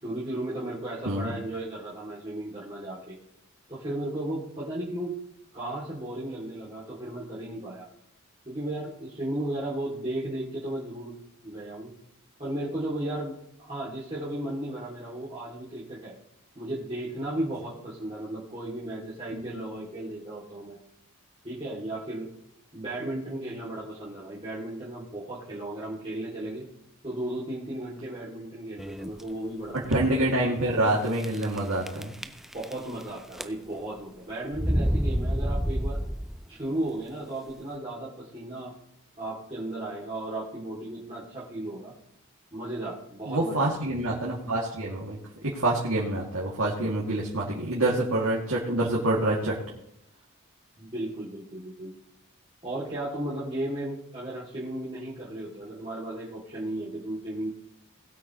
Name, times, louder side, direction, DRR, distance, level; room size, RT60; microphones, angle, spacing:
voice 1, 0.0-3.2 3.7-5.1 5.5-7.9 8.4-11.1 11.4-11.9 12.4-13.3 13.6-16.1 16.5-20.8 21.4-22.3 22.7-26.7 27.0-30.1 32.2-36.0 36.5-38.7 39.2-41.9 42.5-43.9 50.8-51.9 52.6-57.5, right 1 dB, 25° right, -9 dB, 2.9 m, -35 dB
sound 1, 28.8-29.2 29.8-29.9 30.2-30.3 31.2-31.6 31.9-33.0 33.3-33.9 34.5-36.5, equal, ahead, 0.4 m, -28 dB
voice 2, 29.9-32.1 43.2-45.2 45.4-49.5, right 1 dB, 85° right, -5 dB, 2.7 m, -26 dB
20.5 x 8.5 x 3.2 m, 0.80 s
head